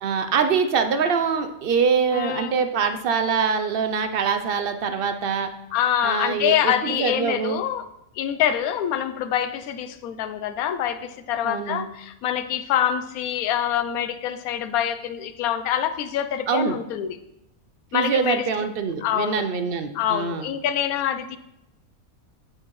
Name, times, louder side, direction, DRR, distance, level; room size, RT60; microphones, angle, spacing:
voice 1, 0.0-5.5 6.0-7.6 11.4-11.9 16.5-16.8 17.9-20.5, right 6 dB, 65° right, 8 dB, 0.5 m, -24 dB
voice 2, 2.1-2.5 5.7-7.9 8.2-17.2 17.9-18.4 19.0-19.4 19.9-21.4, left 10 dB, 80° left, 11 dB, 1.0 m, -25 dB
8.6 x 6.3 x 3.1 m, 0.86 s
omnidirectional pair, 1.5 m